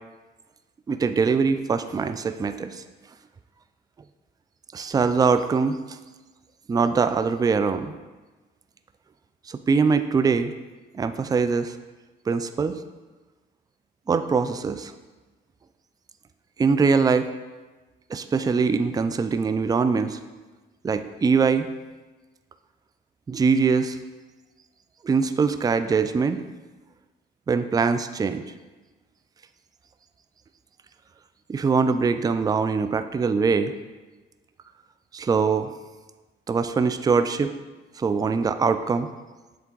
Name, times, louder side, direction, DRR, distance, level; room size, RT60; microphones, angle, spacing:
voice 1, 0.9-2.8 4.7-5.8 6.7-8.0 9.5-10.5 10.9-11.7 12.3-12.8 14.1-14.9 16.6-17.3 18.1-20.2 20.8-21.7 23.3-24.0 25.0-26.4 27.5-28.4 31.5-33.7 35.1-35.7 36.5-37.5 38.0-39.1, right 5 dB, 20° right, 10 dB, 0.3 m, -22 dB
7.4 x 3.5 x 3.8 m, 1.2 s
cardioid pair, 90°, 20 cm